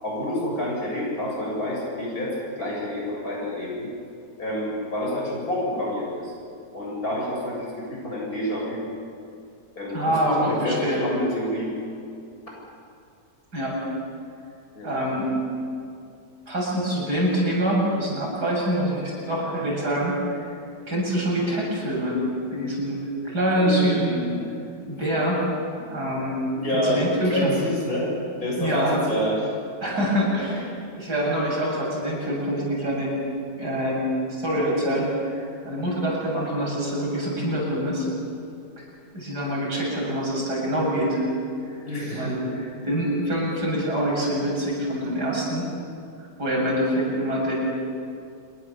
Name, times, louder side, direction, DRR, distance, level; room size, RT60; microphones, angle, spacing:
voice 1, 0.0-3.9 4.4-6.3 6.7-8.8 9.7-11.7 14.7-15.0 23.5-24.5 26.5-29.5 41.9-42.5, left 1 dB, 60° left, -3 dB, 8.5 m, -28 dB
voice 2, 9.9-11.0 13.5-13.8 14.8-15.3 16.5-20.4 20.9-22.2 22.5-24.3 24.8-25.4 25.8-26.4 26.7-27.5 28.6-29.0 29.8-33.1 33.6-34.0 34.3-38.1 38.8-38.9 39.1-41.2 42.1-45.7 46.4-47.5, equal, 75° right, -3 dB, 8.4 m, -25 dB
27.5 x 22.5 x 7.4 m, 2.4 s
omnidirectional pair, 1.8 m